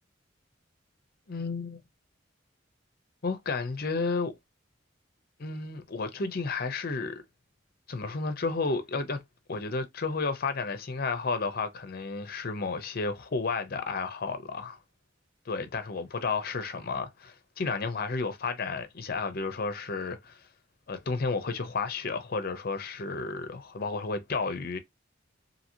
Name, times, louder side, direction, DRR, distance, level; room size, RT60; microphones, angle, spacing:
voice 1, 1.3-1.8 3.2-4.3 5.4-7.2 7.9-9.2 9.5-14.8 15.5-20.4 20.9-24.8, left 4 dB, 50° left, 0.6 m, -32 dB
2.8 x 2.8 x 2.7 m
head